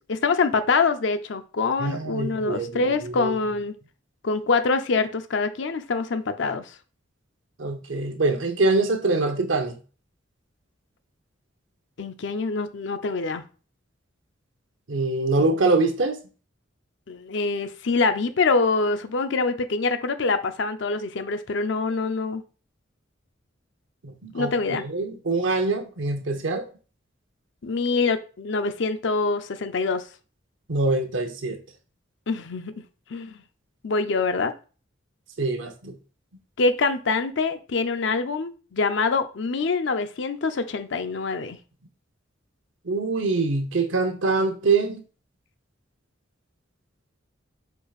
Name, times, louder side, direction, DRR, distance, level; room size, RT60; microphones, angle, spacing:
voice 1, 0.1-3.7 4.2-6.6 12.0-13.4 17.1-22.4 24.3-24.8 27.6-30.0 32.3-32.7 33.1-33.4 33.8-34.5 36.6-41.6, left 4 dB, 65° left, 0.6 m, -25 dB
voice 2, 1.8-3.3 7.6-9.7 14.9-16.2 24.0-26.7 30.7-31.6 35.4-36.0 42.8-45.0, right 3 dB, 70° right, 0.8 m, -24 dB
4.7 x 4.5 x 2.4 m
head